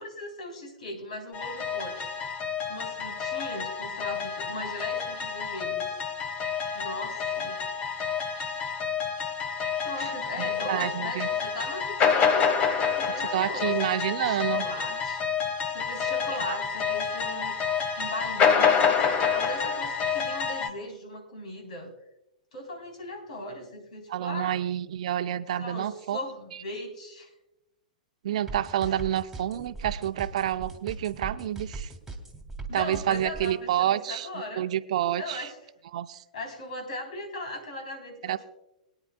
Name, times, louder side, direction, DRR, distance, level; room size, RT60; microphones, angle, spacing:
voice 1, 0.0-2.1 2.7-6.0 6.7-7.6 9.8-13.8 14.1-17.5 18.0-21.9 22.5-24.6 25.6-27.3 32.7-34.7 35.2-35.6 36.3-38.4, left 1 dB, 65° left, 3 dB, 3.5 m, -39 dB
sound 1, 1.3-20.7, left 6 dB, 30° left, 1.2 m, -28 dB
voice 2, 10.0-11.3 13.3-14.7 16.5-16.6 24.1-26.2 28.2-31.9 32.7-34.3 34.6-35.5 35.9-36.2 38.2-38.4, right 11 dB, 60° right, 12 dB, 0.6 m, -29 dB
sound 2, 28.5-33.5, right 4 dB, 5° right, 2.3 m, -39 dB
23.5 x 9.8 x 2.3 m, 0.90 s
figure-of-eight pair, 100°, 4 cm